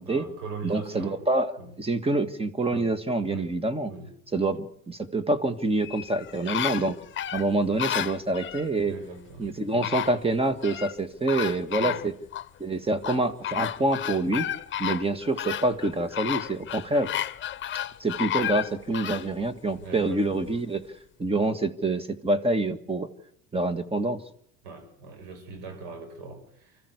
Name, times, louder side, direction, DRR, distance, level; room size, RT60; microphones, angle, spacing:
voice 1, 0.0-1.2 1.6-1.7 2.7-2.9 3.3-3.5 3.9-4.1 8.9-9.9 11.8-12.0 19.8-20.5 24.6-26.8, right 4 dB, 80° right, 6 dB, 6.7 m, -41 dB
voice 2, 0.6-1.5 1.8-3.9 4.3-7.0 7.3-8.9 9.4-12.1 12.6-14.5 14.8-17.1 18.0-20.8 21.2-23.1 23.5-24.2, right 2 dB, 20° right, 11 dB, 1.9 m, -26 dB
sound 1, 5.8-8.7 9.4-9.5 9.8-10.9 11.3-12.5 13.0-19.3 19.8-19.9, left 11 dB, 35° left, 1.0 m, -32 dB
25.0 x 14.5 x 8.3 m, 0.72 s
supercardioid pair, 95°, 32 cm